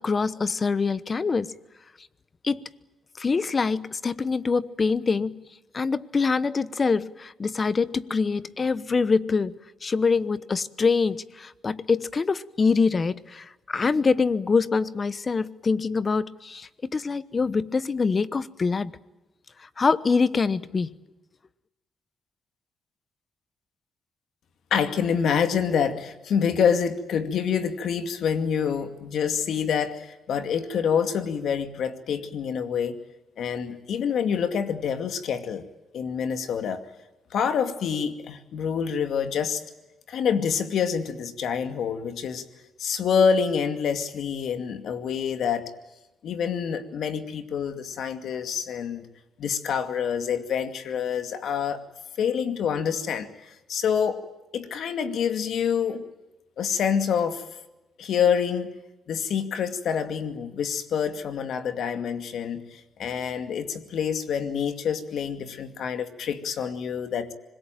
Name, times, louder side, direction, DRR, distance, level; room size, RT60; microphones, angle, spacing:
voice 1, 0.0-1.5 2.4-2.6 3.2-5.4 5.7-18.9 19.6-20.9, left 4 dB, 35° left, 1.0 m, -25 dB
voice 2, 24.7-33.0 33.4-35.6 35.9-36.8 37.3-39.6 40.1-42.4 42.8-45.7 46.2-49.1 49.4-51.8 52.2-54.2 54.5-56.0 56.6-57.4 58.0-58.7 59.1-67.3, left 7 dB, 70° left, 2.3 m, -27 dB
25.5 x 21.5 x 9.2 m
cardioid pair, 90°, 0 cm